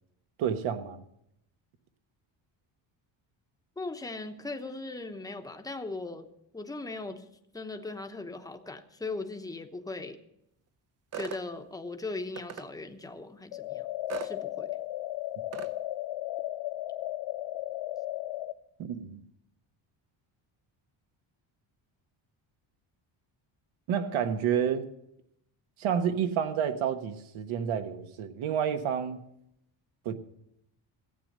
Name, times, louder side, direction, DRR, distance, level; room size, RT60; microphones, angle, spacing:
voice 1, 0.4-1.0 18.8-19.2 23.9-24.8 25.8-29.2 30.0-30.1, right 8 dB, 80° right, 1.4 m, -29 dB
voice 2, 3.8-6.3 6.5-7.3 7.5-10.2 11.1-13.9 14.2-14.7, left 3 dB, 10° left, 0.9 m, -38 dB
sound 1, 11.1-11.4 12.4-12.7 14.1-14.3 15.5-15.7, right 9 dB, 35° right, 0.6 m, -38 dB
sound 2, 13.5-18.5, left 15 dB, 70° left, 0.6 m, -35 dB
15.5 x 9.1 x 6.6 m
cardioid pair, 150°, 48 cm